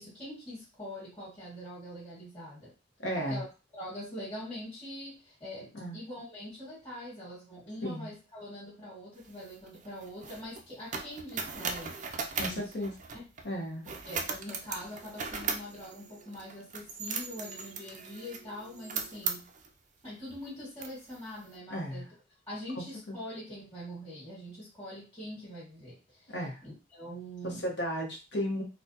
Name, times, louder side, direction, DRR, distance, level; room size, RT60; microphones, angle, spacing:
voice 1, 0.0-2.7 3.1-3.4 3.7-12.0 12.4-12.7 13.1-13.2 13.8-19.4 20.0-22.1 22.5-26.3 26.6-27.6, equal, 25° left, -7 dB, 1.7 m, -43 dB
voice 2, 3.0-3.4 5.7-6.0 7.8-8.1 12.4-12.9 13.4-13.9 21.7-22.0 22.8-23.1 26.3-26.6 27.4-28.6, equal, 65° left, 0 dB, 1.1 m, -34 dB
sound 1, 9.2-13.5 13.8-19.7 20.3-20.4 20.8-21.4, right 5 dB, 40° right, 0.4 m, -38 dB
4.1 x 2.2 x 2.8 m, 0.30 s
head